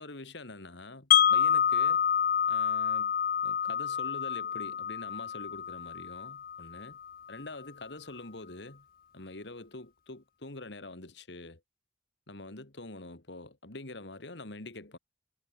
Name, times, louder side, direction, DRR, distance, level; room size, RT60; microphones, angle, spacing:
voice 1, 0.0-2.0 2.5-3.1 3.4-7.0 7.3-8.9 9.1-11.6 12.3-15.0, left 2 dB, 70° left, 2.2 m, -45 dB
Wind chime, 1.1-7.1, left 8 dB, 50° left, 0.4 m, -28 dB
head